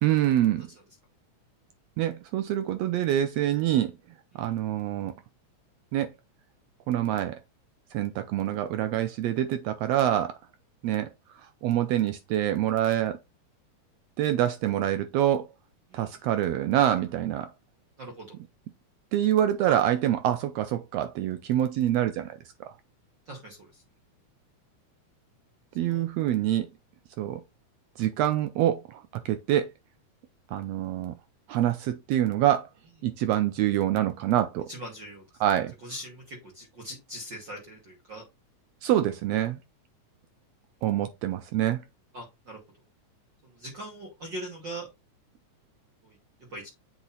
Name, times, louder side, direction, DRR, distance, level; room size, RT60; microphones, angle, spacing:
voice 1, 0.0-0.7 2.0-3.9 4.3-5.1 5.9-6.1 6.9-7.4 7.9-10.4 10.8-11.1 11.6-13.2 14.2-15.5 15.9-17.5 19.1-22.4 25.8-26.7 27.2-27.4 28.0-29.7 30.5-31.1 31.5-32.7 33.0-34.7 35.4-35.7 38.8-39.6 40.8-41.8, right 12 dB, 90° right, 1.4 m, -26 dB
voice 2, 15.9-16.2 18.0-18.4 19.6-19.8 23.2-23.8 25.8-26.1 34.7-35.4 35.8-38.2 42.1-42.6 43.4-44.9 46.0-46.2 46.5-46.7, right 1 dB, 45° right, 1.7 m, -41 dB
7.9 x 3.0 x 4.1 m
omnidirectional pair, 3.5 m